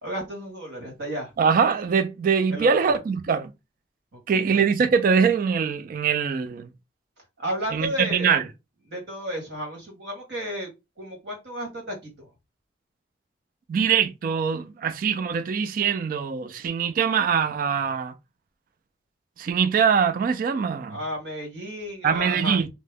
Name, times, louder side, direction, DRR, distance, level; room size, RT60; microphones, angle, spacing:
voice 1, 0.0-1.3 2.5-2.9 4.1-4.6 7.4-8.4 8.9-10.7 11.0-12.3 20.9-22.6, equal, 75° right, 1.4 m, -33 dB
voice 2, 1.4-3.5 4.3-6.7 7.7-8.4 13.7-18.1 19.4-21.0 22.0-22.7, right 6 dB, 50° right, 0.3 m, -23 dB
2.7 x 2.0 x 3.3 m
head